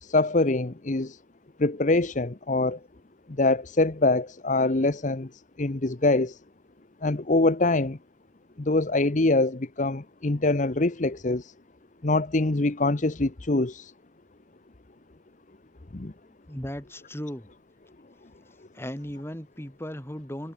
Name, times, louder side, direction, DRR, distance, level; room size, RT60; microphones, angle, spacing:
voice 1, 0.0-1.2 1.6-2.8 3.4-5.3 5.6-6.4 7.0-8.0 8.6-11.5 12.0-13.9 15.9-16.1, left 2 dB, 40° left, 0.9 m, -24 dB
voice 2, 16.2-17.5 18.7-20.5, equal, 15° left, 3.9 m, -37 dB
head